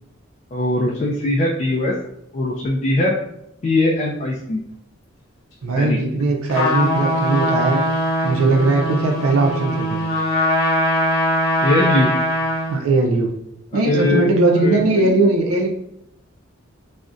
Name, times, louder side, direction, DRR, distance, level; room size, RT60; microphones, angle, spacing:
voice 1, 0.5-1.9 2.3-3.2 3.6-4.6 5.8-6.0 6.9-7.0 11.6-12.1 13.7-14.3 14.6-15.2, left 2 dB, 35° left, -3 dB, 0.3 m, -20 dB
voice 2, 5.6-7.8 8.2-10.0 12.7-13.3 13.7-15.7, right 2 dB, 85° right, 1 dB, 0.4 m, -19 dB
Trumpet, 6.5-12.8, equal, 90° left, 0.9 m, -21 dB
2.4 x 2.1 x 3.7 m, 0.80 s
head